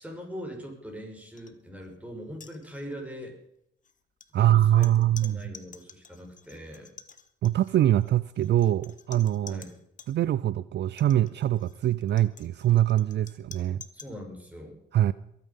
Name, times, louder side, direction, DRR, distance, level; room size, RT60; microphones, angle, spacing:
voice 1, 0.0-3.3 4.4-6.9 9.4-9.8 13.9-14.8, equal, 5° right, 1 dB, 6.1 m, -41 dB
sound 1, 1.4-1.5 1.8-2.0 2.3-3.1 3.8-10.1 10.9-14.2, left 6 dB, 40° left, 1.4 m, -50 dB
voice 2, 4.3-5.4 7.4-9.6 10.1-13.8 14.9-15.1, right 12 dB, 60° right, 17 dB, 0.5 m, -23 dB
22.5 x 9.1 x 5.5 m, 0.76 s
cardioid pair, 90°, 20 cm